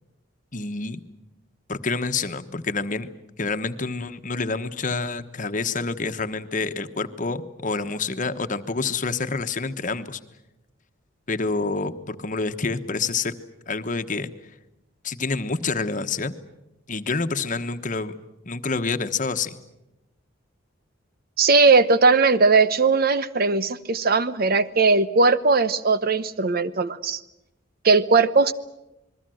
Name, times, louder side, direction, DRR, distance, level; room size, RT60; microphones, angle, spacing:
voice 1, 0.5-1.0 1.7-3.1 3.4-10.2 11.3-13.3 13.7-14.3 15.0-16.3 16.9-18.2 18.4-19.6, left 4 dB, 45° left, 9 dB, 1.2 m, -27 dB
voice 2, 21.4-27.2 27.8-28.5, right 4 dB, 50° right, 14 dB, 0.9 m, -19 dB
28.0 x 21.5 x 7.8 m, 0.92 s
head